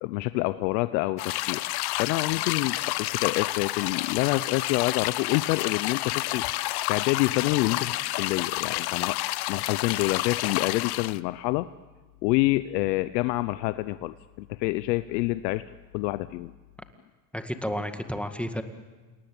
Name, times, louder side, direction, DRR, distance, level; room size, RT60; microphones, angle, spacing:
voice 1, 0.0-9.2 9.5-11.7 12.2-15.6 15.9-16.5, left 19 dB, 80° left, 13 dB, 0.9 m, -27 dB
sound 1, 1.2-11.2, left 18 dB, 50° left, 0.8 m, -30 dB
voice 2, 17.3-18.6, equal, ahead, 7 dB, 2.0 m, -31 dB
29.0 x 18.5 x 8.8 m, 1.3 s
supercardioid pair, 105°, 49 cm